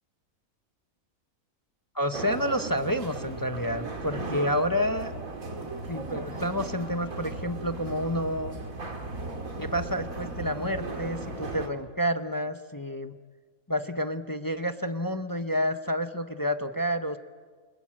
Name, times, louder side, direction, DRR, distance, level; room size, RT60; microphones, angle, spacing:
voice 1, 1.9-5.1 5.9-8.5 9.6-13.2 13.7-17.2, equal, 15° left, 8 dB, 0.8 m, -29 dB
sound 1, 2.1-11.7, right 2 dB, 70° right, 3.0 m, -36 dB
28.5 x 20.5 x 8.6 m, 1.5 s
omnidirectional pair, 1.5 m